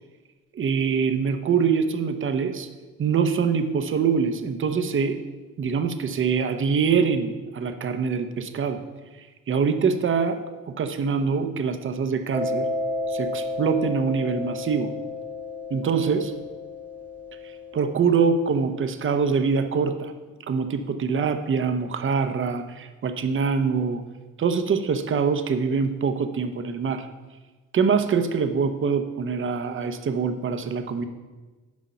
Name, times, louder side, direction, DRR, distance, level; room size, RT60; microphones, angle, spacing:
voice 1, 0.5-2.7 3.0-5.2 5.6-8.8 9.5-12.7 13.1-14.9 15.7-16.3 17.7-20.1 20.5-24.0 24.4-27.1 27.7-31.0, right 5 dB, 40° right, 8 dB, 0.7 m, -24 dB
Mallet percussion, 12.3-18.7, left 2 dB, 5° right, 0.9 m, -32 dB
6.3 x 5.3 x 5.5 m, 1.3 s
cardioid pair, 90°, 30 cm